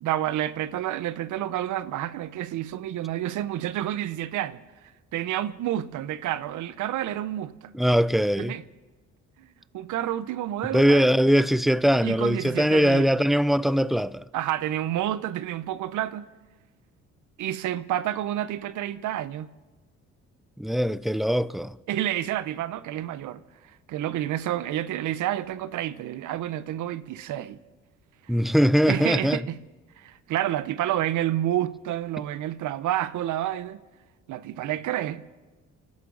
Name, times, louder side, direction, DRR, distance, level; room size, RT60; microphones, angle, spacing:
voice 1, 0.0-4.6 5.1-7.7 8.4-8.6 9.4-11.1 12.0-13.2 14.3-16.2 17.4-19.5 21.9-23.4 23.9-27.6 28.9-29.6 30.0-33.8 34.3-35.2, right 12 dB, 80° right, 0.7 m, -29 dB
voice 2, 7.7-8.6 10.7-14.2 20.6-21.8 28.3-29.4, equal, ahead, 0.4 m, -21 dB
29.5 x 12.5 x 3.9 m
cardioid pair, 90°, 30 cm